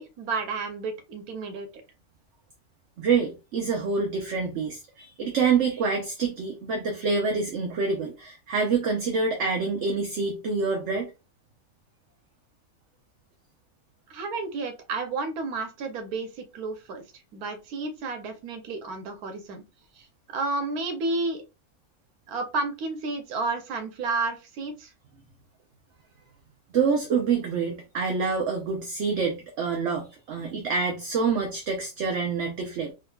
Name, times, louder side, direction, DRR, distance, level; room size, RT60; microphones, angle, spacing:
voice 1, 0.0-1.7 14.1-17.0 17.3-19.6 20.0-21.4 22.3-24.9, right 3 dB, 90° right, 1.3 m, -31 dB
voice 2, 3.0-11.1 26.7-32.9, right 5 dB, 60° right, 0.8 m, -26 dB
3.6 x 2.7 x 2.3 m
omnidirectional pair, 1.5 m